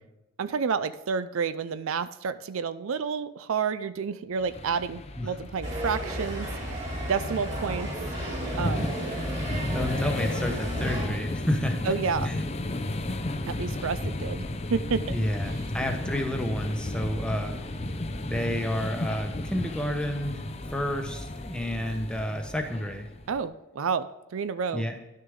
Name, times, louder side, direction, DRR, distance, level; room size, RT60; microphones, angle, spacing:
voice 1, 0.4-7.9 8.6-8.9 11.8-12.3 13.5-15.2 23.3-24.9, right 6 dB, 70° right, 14 dB, 0.4 m, -30 dB
sound 1, 4.4-23.5, left 1 dB, 30° left, 0.5 m, -34 dB
sound 2, 5.6-11.1, right 1 dB, 30° right, 3.2 m, -33 dB
voice 2, 9.7-11.9 12.2-12.4 15.1-17.6 18.3-23.1 24.7-24.9, left 1 dB, 5° left, 4 dB, 1.0 m, -30 dB
11.5 x 6.5 x 3.6 m, 1.1 s
head